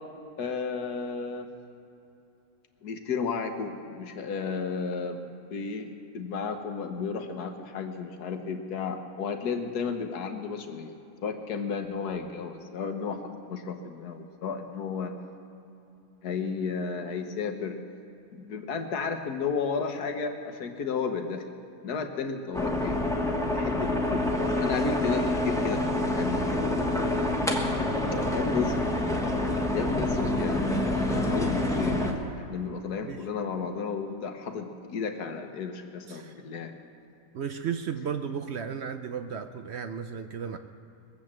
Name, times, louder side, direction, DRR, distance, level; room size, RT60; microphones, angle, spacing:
voice 1, 0.4-1.5 2.8-5.9 6.1-10.9 11.2-15.1 16.2-17.8 18.3-21.5 21.8-23.0 23.5-27.3 28.3-28.8 29.7-36.7, left 5 dB, 70° left, 5 dB, 1.6 m, -33 dB
sound 1, 22.5-32.1, left 1 dB, ahead, 1.0 m, -27 dB
voice 2, 37.3-40.6, right 7 dB, 60° right, 8 dB, 0.7 m, -34 dB
21.0 x 7.7 x 7.5 m, 2.9 s
omnidirectional pair, 1.7 m